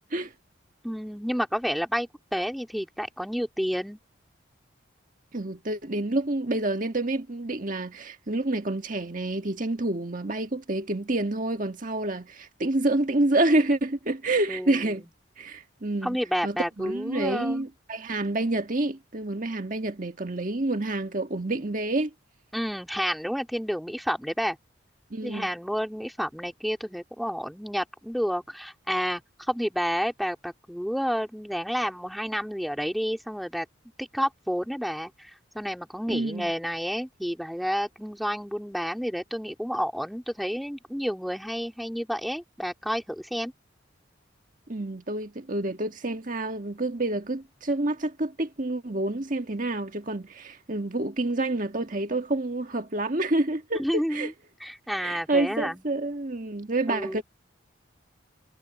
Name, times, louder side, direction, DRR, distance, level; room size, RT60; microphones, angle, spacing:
voice 1, 0.8-4.0 14.5-14.8 16.0-17.7 22.5-24.6 25.2-29.2 29.5-33.7 34.0-43.5 53.8-54.3 54.6-55.8 56.9-57.2, equal, ahead, 2.5 m, -30 dB
voice 2, 5.3-15.0 15.4-16.2 16.4-22.1 25.1-25.5 36.1-36.5 44.7-54.3 55.0-57.2, right 2 dB, 40° right, 1.6 m, -28 dB
head